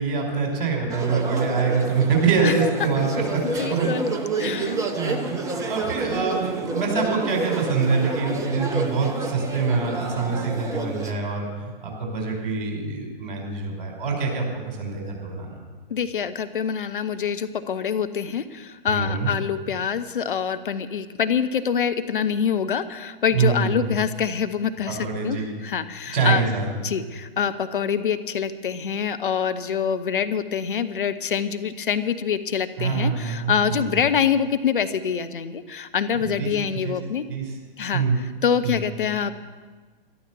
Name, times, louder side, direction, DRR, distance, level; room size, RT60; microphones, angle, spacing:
voice 1, 0.0-3.4 3.7-3.9 4.4-15.5 18.9-19.3 23.3-23.7 24.9-25.6 26.1-26.7 32.8-33.9 36.2-36.5 36.8-37.0 37.3-37.5 37.9-38.2 38.6-38.8, right 5 dB, 45° right, 0 dB, 5.2 m, -25 dB
sound 1, 0.9-11.1, right 3 dB, 10° right, 1.0 m, -29 dB
voice 2, 3.4-4.1 4.4-4.7 15.9-26.4 26.8-37.2 37.8-38.0 38.4-39.3, left 7 dB, 65° left, 11 dB, 0.8 m, -25 dB
12.5 x 12.5 x 7.1 m, 1.4 s
figure-of-eight pair, 115°, 29 cm